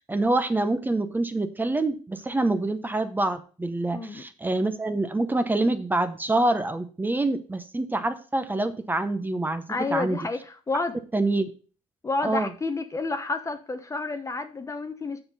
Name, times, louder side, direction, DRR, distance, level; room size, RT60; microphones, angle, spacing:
voice 1, 0.1-9.6 9.9-10.2 11.1-11.5 12.2-12.5, right 2 dB, 15° right, 10 dB, 0.8 m, -26 dB
voice 2, 3.9-4.2 9.7-11.0 12.0-15.2, left 3 dB, 20° left, 7 dB, 0.8 m, -30 dB
6.9 x 6.0 x 5.3 m, 0.38 s
cardioid pair, 95°, 14 cm